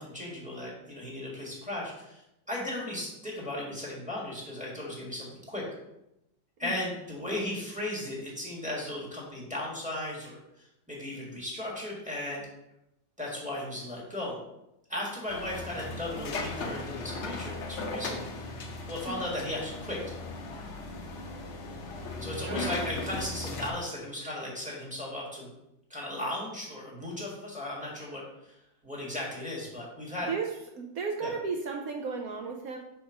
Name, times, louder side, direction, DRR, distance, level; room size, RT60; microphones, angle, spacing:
voice 1, 0.0-2.2 2.5-5.6 6.6-12.4 13.2-14.4 14.9-18.2 18.9-20.0 22.2-25.5 25.9-28.2 28.8-30.3 31.2-31.3, left 1 dB, 5° right, -3 dB, 1.4 m, -36 dB
sound 1, 15.3-23.7, left 3 dB, 65° left, 0.7 m, -37 dB
voice 2, 22.4-22.7 30.3-30.5 30.7-32.8, right 5 dB, 75° right, 2 dB, 0.8 m, -34 dB
5.3 x 3.6 x 5.8 m, 0.86 s
omnidirectional pair, 2.1 m